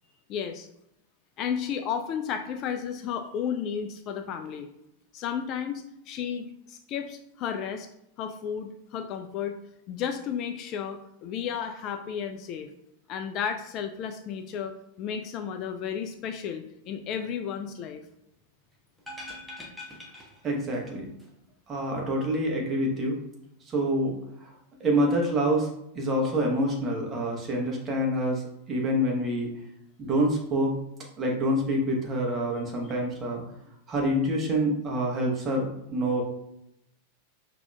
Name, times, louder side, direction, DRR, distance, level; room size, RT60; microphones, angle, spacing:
voice 1, 0.3-0.7 1.4-4.7 5.1-7.9 8.2-9.6 9.9-12.7 13.1-18.1, left 8 dB, 40° left, 7 dB, 0.3 m, -33 dB
sound 1, 19.0-20.9 21.2-21.3, left 1 dB, ahead, 0.9 m, -43 dB
voice 2, 20.4-21.1 21.7-23.2 23.7-24.5 24.8-25.7 25.9-29.5 30.0-30.7 31.2-33.4 33.9-36.2, equal, 25° right, -1 dB, 1.1 m, -26 dB
5.8 x 2.8 x 2.3 m, 0.80 s
figure-of-eight pair, 90°, 0 cm